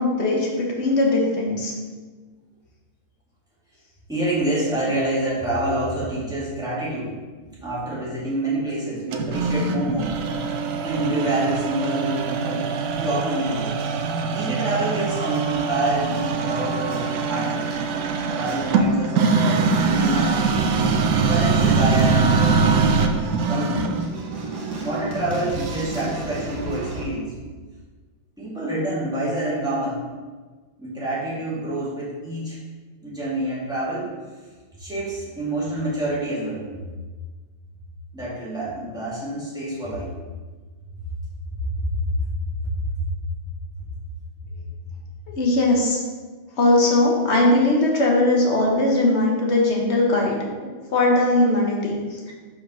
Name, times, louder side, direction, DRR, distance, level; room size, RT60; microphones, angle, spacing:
voice 1, 0.0-1.7 45.4-46.0 46.6-52.3, left 2 dB, 45° left, -1 dB, 1.1 m, -20 dB
voice 2, 4.1-7.1 7.6-10.1 10.8-12.6 12.9-13.7 14.3-17.6 18.3-20.5 21.1-22.7 23.5-23.9 24.8-27.3 28.4-30.0 30.8-32.6 33.0-34.1 34.8-36.7 38.1-40.1 40.9-41.0 41.8-42.0 43.0-43.1 44.4-44.5, right 1 dB, ahead, -9 dB, 1.9 m, -27 dB
sound 1, 9.1-24.1, right 4 dB, 80° right, 0.8 m, -23 dB
sound 2, 12.4-27.1, right 1 dB, 60° right, 1.3 m, -34 dB
5.0 x 4.6 x 5.5 m, 1.4 s
omnidirectional pair, 2.2 m